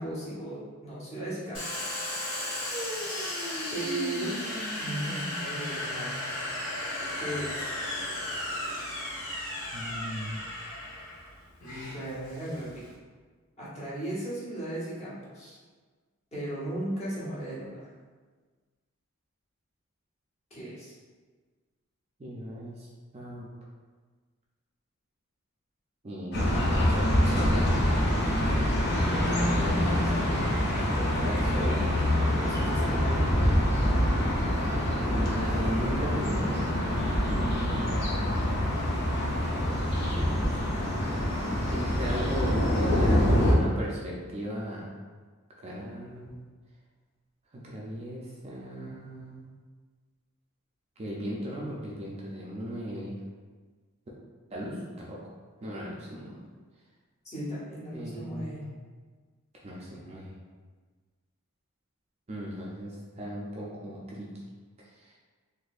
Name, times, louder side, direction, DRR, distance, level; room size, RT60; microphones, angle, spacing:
voice 1, 0.0-1.9 3.7-4.4 4.8-6.2 7.2-7.7 11.9-12.8 13.6-15.6 16.3-17.9 20.5-21.0 32.0-33.3 57.2-58.6, right 1 dB, 30° left, -8 dB, 1.0 m, -36 dB
Domestic sounds home sounds, 1.5-12.9, left 1 dB, 75° left, 1.2 m, -35 dB
voice 2, 9.7-10.4 22.2-22.9 23.1-23.5 26.0-28.2 29.1-31.9 35.1-36.9 37.2-38.2 40.1-45.0 45.6-46.4 47.5-49.5 51.0-53.2 54.5-55.2 55.6-56.4 57.9-58.7 59.6-60.3 62.3-64.3, equal, 30° right, -4 dB, 0.4 m, -37 dB
sound 1, 26.3-43.5, equal, 50° left, 0.6 m, -25 dB
4.0 x 2.6 x 2.4 m, 1.4 s
head